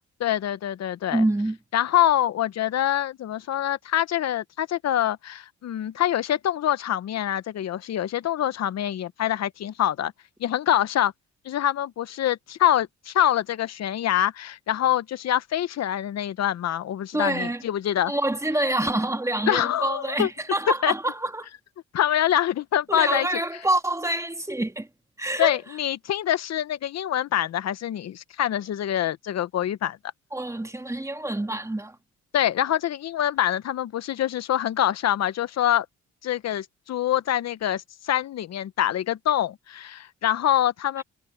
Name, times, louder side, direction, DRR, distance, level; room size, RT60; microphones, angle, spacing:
voice 1, 0.2-1.2 1.7-10.1 10.4-11.1 11.4-18.1 19.5-20.3 20.8-20.9 21.9-23.3 25.4-30.0 32.3-35.9 36.2-41.0, left 11 dB, 60° left, 0.9 m, -25 dB
voice 2, 1.1-1.6 17.1-17.6 18.1-21.5 22.9-24.9 25.2-25.6 30.3-32.0, right 1 dB, 10° right, 2.1 m, -26 dB
cardioid pair, 90°, 30 cm